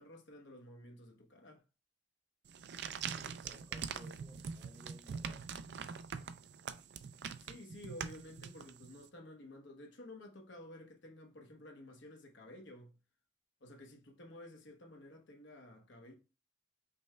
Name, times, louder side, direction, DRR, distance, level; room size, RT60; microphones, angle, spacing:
voice 1, 0.0-1.6 7.4-13.0 13.6-16.1, left 1 dB, 65° left, 0.9 m, -53 dB
sound 1, 2.5-9.0, right 6 dB, 55° right, 0.3 m, -43 dB
voice 2, 3.0-5.5, equal, 10° right, 0.8 m, -59 dB
5.4 x 2.1 x 3.2 m
head